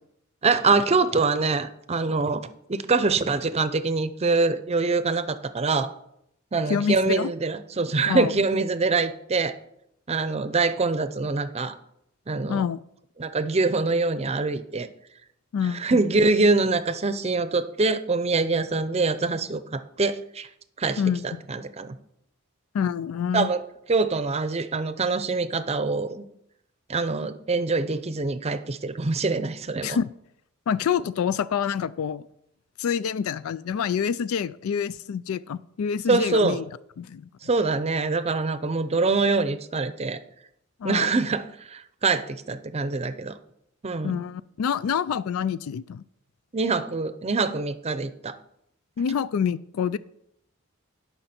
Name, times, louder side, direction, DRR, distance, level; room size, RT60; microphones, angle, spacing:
voice 1, 0.4-2.4 2.7-5.9 6.5-9.5 10.1-11.7 12.3-12.7 13.2-14.9 15.7-20.5 20.8-21.0 21.5-22.0 23.3-23.6 23.9-26.2 26.9-30.0 36.1-36.6 37.4-40.2 40.8-43.4 43.8-44.2 46.5-48.4, right 3 dB, 30° right, 0.6 m, -24 dB
voice 2, 6.7-7.3 8.1-8.3 12.5-12.8 15.5-16.0 21.0-21.3 22.7-23.5 29.8-30.1 30.7-32.3 32.8-36.6 37.0-37.3 40.8-41.1 44.0-46.0 49.0-50.0, left 7 dB, 85° left, 0.3 m, -27 dB
17.5 x 5.8 x 4.3 m
head